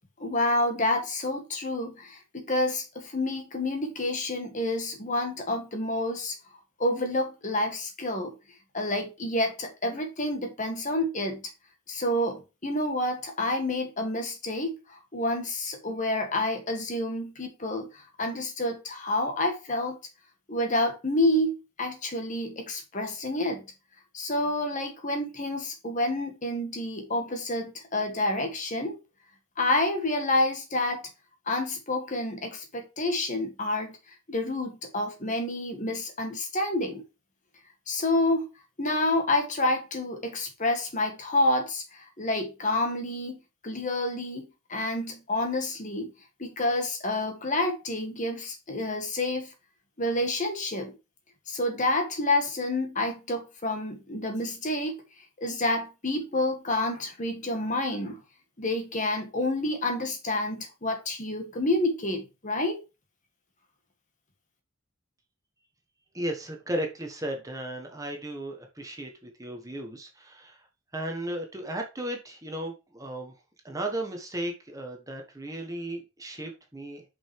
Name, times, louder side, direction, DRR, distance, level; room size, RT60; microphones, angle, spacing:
voice 1, 0.2-6.4 6.8-8.3 8.7-11.5 11.9-20.0 20.5-23.7 24.1-28.9 29.6-31.0 31.4-34.0 34.3-37.0 37.9-38.5 38.8-46.1 46.4-49.5 50.0-51.0 51.5-55.0 55.4-58.2 58.6-62.8, left 1 dB, 35° left, 1.7 m, -29 dB
voice 2, 66.1-70.7 70.9-73.3 73.6-77.0, right 1 dB, 15° right, 1.2 m, -35 dB
6.2 x 5.6 x 4.6 m
head